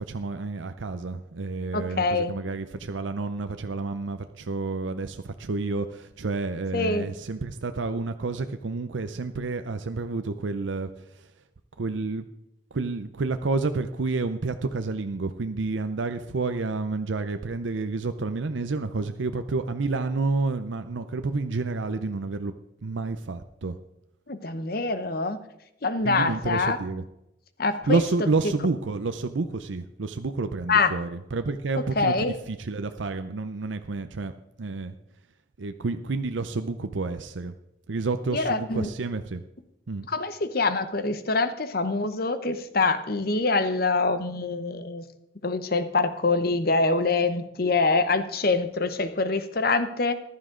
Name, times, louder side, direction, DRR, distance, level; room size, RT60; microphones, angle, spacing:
voice 1, 0.0-10.9 11.2-11.3 11.8-12.2 12.7-22.5 22.8-23.7 26.0-27.0 27.9-34.3 34.6-34.9 35.6-37.5 37.9-39.4 39.9-40.1, right 3 dB, 80° right, 9 dB, 0.6 m, -29 dB
voice 2, 1.7-2.3 6.7-7.1 24.3-25.4 25.8-26.8 27.6-28.0 30.7-30.9 32.0-32.3 38.3-38.9 40.1-45.1 45.4-50.1, left 3 dB, 50° left, 11 dB, 0.9 m, -25 dB
14.5 x 11.5 x 3.8 m, 0.86 s
head